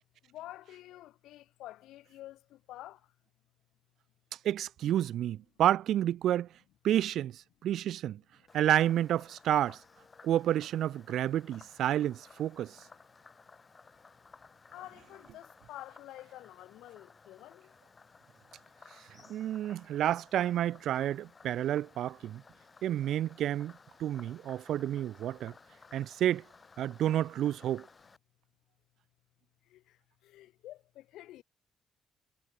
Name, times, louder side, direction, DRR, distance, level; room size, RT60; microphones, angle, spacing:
voice 1, 0.3-3.0 14.7-17.7 29.7-29.8 30.2-31.4, left 15 dB, 90° left, 2.6 m, -49 dB
voice 2, 4.4-6.5 6.8-8.2 8.5-9.8 10.2-12.8 19.3-22.4 22.8-23.7 24.0-25.5 25.9-26.4 26.8-27.9, right 11 dB, 75° right, 0.4 m, -30 dB
Frog, 8.5-28.2, left 4 dB, 30° left, 6.3 m, -57 dB
cardioid pair, 90°, 0 cm